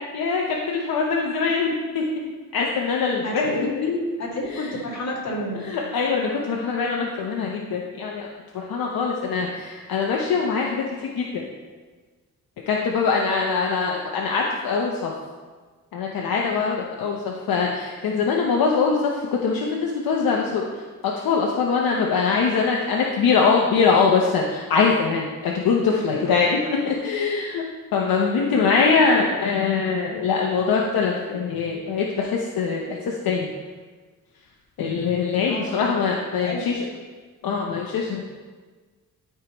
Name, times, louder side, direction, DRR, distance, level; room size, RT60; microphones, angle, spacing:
voice 1, 0.1-2.0 2.5-3.8 4.5-4.7 5.6-8.3 8.5-11.4 12.7-15.1 15.9-20.6 21.0-27.6 27.9-33.5 34.8-36.8 37.4-38.2, left 5 dB, 75° left, -1 dB, 0.8 m, -23 dB
voice 2, 3.2-5.7 25.9-26.4 35.5-36.0 36.4-36.9, left 1 dB, 50° left, -5 dB, 2.2 m, -30 dB
12.5 x 4.6 x 3.0 m, 1.4 s
wide cardioid pair, 155°, 36 cm